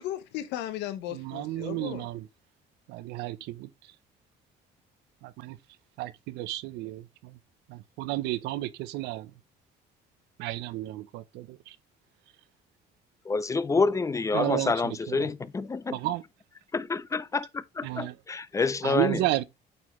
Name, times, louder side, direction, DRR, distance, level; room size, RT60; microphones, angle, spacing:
voice 1, 0.0-2.1, left 12 dB, 85° left, 0.8 m, -36 dB
voice 2, 1.1-2.3 2.9-3.7 5.2-5.6 6.0-7.4 7.7-9.3 10.4-11.8 14.3-15.3 15.9-16.2 17.8-18.2 18.8-19.4, right 16 dB, 90° right, 0.6 m, -32 dB
voice 3, 13.3-16.0 16.7-19.2, left 4 dB, 20° left, 0.4 m, -28 dB
8.7 x 4.3 x 3.0 m
cardioid pair, 110°, 17 cm